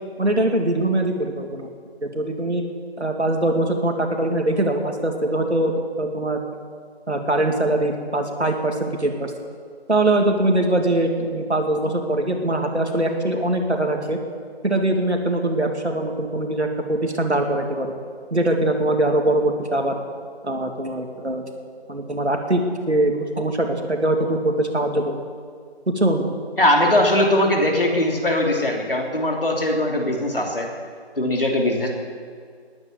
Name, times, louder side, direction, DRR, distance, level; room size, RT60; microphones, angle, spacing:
voice 1, 0.2-1.7 2.0-2.6 3.0-6.4 7.1-9.3 9.9-14.2 14.6-17.9 18.3-20.0 20.4-21.4 21.9-25.2 25.9-26.3, right 1 dB, 80° right, 3 dB, 2.7 m, -22 dB
voice 2, 26.6-30.7 31.2-31.9, left 1 dB, 55° left, 1 dB, 3.1 m, -20 dB
19.5 x 9.8 x 7.3 m, 2.1 s
figure-of-eight pair, 175°, 33 cm